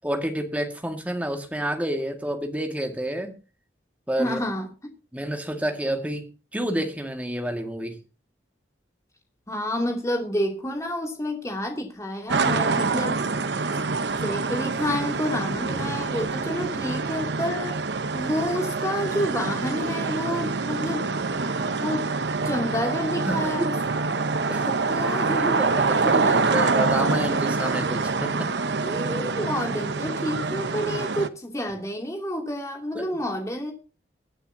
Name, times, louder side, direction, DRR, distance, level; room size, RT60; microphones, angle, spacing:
voice 1, 0.0-3.3 4.1-4.4 5.1-6.3 6.5-8.0 23.3-23.7 24.5-24.8 25.3-28.5 32.9-33.1, right 1 dB, 10° right, 4 dB, 1.9 m, -29 dB
voice 2, 4.2-4.7 9.5-13.2 14.2-17.8 18.1-21.2 21.8-22.1 22.4-24.1 24.9-25.6 25.9-26.4 28.8-33.7, equal, 15° left, 2 dB, 2.7 m, -29 dB
sound 1, 12.3-31.3, right 4 dB, 80° right, 0.9 m, -26 dB
23.0 x 8.7 x 2.8 m, 0.34 s
head